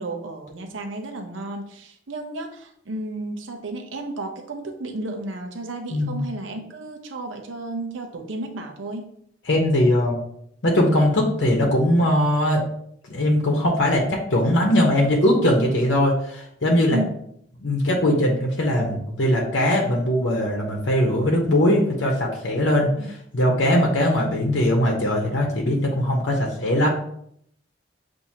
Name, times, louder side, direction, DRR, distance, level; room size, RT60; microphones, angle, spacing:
voice 1, 0.0-9.1 16.9-17.1 23.0-23.1, right 2 dB, 90° right, 4 dB, 0.7 m, -33 dB
voice 2, 5.9-6.2 9.5-10.2 10.6-12.6 13.1-17.0 17.6-26.9, left 1 dB, 70° left, -1 dB, 0.8 m, -20 dB
7.1 x 2.7 x 2.8 m, 0.70 s
head